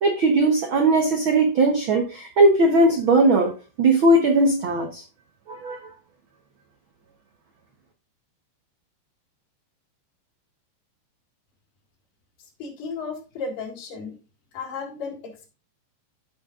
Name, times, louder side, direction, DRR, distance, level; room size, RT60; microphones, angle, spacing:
voice 1, 0.0-3.5 3.8-5.0 5.5-5.8, right 2 dB, 80° right, 4 dB, 1.1 m, -19 dB
voice 2, 12.6-14.2 14.5-15.5, left 4 dB, 90° left, 0 dB, 3.9 m, -34 dB
13.5 x 5.7 x 2.5 m, 0.32 s
omnidirectional pair, 3.8 m